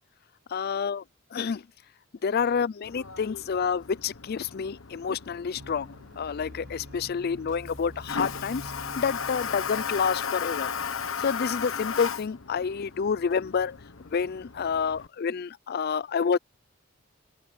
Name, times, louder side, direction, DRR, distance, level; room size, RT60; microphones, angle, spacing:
voice 1, 0.5-1.0 1.3-1.6 2.2-10.7 11.2-13.7 14.1-16.4, left 6 dB, 50° left, 0.4 m, -28 dB
Toilet flush, 2.8-15.1, left 6 dB, 90° left, 1.2 m, -36 dB
sound 1, 5.6-10.9, equal, 55° right, 7.9 m, -47 dB
open air
head